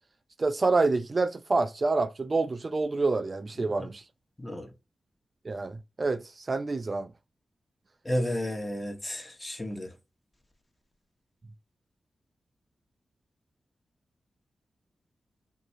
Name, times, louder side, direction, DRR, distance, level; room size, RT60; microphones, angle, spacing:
voice 1, 0.4-4.0 5.5-7.1, right 3 dB, 45° right, 0.3 m, -27 dB
voice 2, 4.4-4.7 8.0-9.9, equal, 20° left, 1.2 m, -32 dB
3.0 x 2.6 x 4.4 m
cardioid pair, 60°, 0 cm